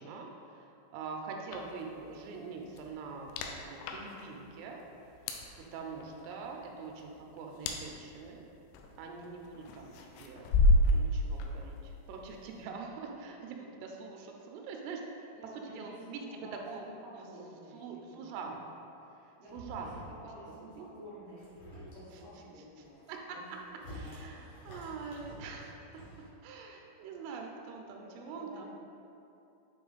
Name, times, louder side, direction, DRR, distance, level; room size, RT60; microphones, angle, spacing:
voice 1, 0.0-5.2 5.6-8.4 9.0-15.3 15.6-16.9 17.1-17.3 17.7-18.8 19.1-19.9 20.8-20.9 22.1-22.2 23.1-23.6 23.9-26.0 26.4-28.7, right 4 dB, 90° right, 1 dB, 3.2 m, -44 dB
sound 1, 1.5-12.7, left 1 dB, 85° left, 2.7 m, -33 dB
voice 2, 15.3-16.9 17.2-18.3 19.1-23.0 23.3-23.5 23.8-24.5 28.0-28.7, equal, 70° right, -12 dB, 2.5 m, -51 dB
sound 2, 19.5-20.2 20.5-20.9 21.3-22.2 22.8-26.3, equal, 60° left, 2.6 m, -49 dB
8.6 x 3.1 x 4.0 m, 2.7 s
omnidirectional pair, 5.7 m